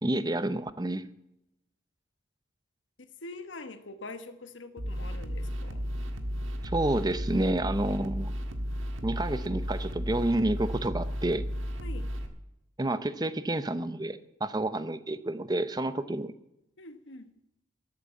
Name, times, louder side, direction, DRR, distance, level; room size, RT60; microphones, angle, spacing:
voice 1, 0.0-1.0 6.6-8.3 9.0-11.4 12.8-16.3, right 1 dB, 20° right, 13 dB, 0.6 m, -29 dB
voice 2, 3.0-5.9 11.8-12.1 16.8-17.3, left 2 dB, 70° left, 9 dB, 1.2 m, -44 dB
sound 1, 4.8-12.3, equal, 85° right, 1.7 m, -34 dB
13.0 x 8.4 x 8.2 m, 0.86 s
head